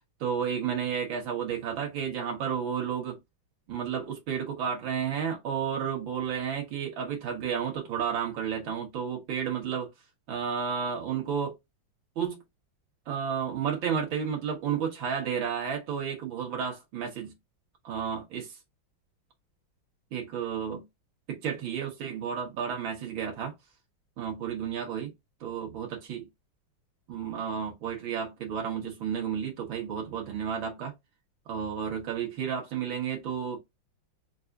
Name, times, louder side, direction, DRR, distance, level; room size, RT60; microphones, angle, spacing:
voice 1, 0.2-3.2 3.7-9.9 10.3-11.5 12.2-12.4 13.1-17.3 17.8-18.6 20.1-20.8 21.3-23.5 24.2-25.1 25.4-26.3 27.1-30.9 31.5-33.6, right 7 dB, 70° right, 2.2 m, -32 dB
6.4 x 2.5 x 2.3 m
omnidirectional pair, 2.3 m